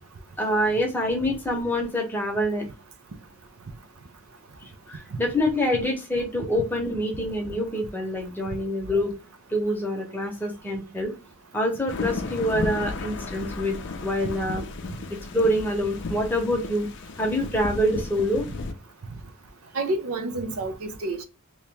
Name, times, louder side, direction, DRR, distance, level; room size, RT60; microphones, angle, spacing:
voice 1, 0.4-2.6 4.9-9.1 9.5-11.1 11.5-14.6 15.1-16.9 17.2-18.5, equal, 10° left, 0.8 m, -26 dB
sound 1, 11.9-18.7, left 3 dB, 55° left, 0.4 m, -34 dB
voice 2, 19.7-21.2, right 2 dB, 75° right, 0.6 m, -29 dB
3.0 x 2.8 x 3.4 m
head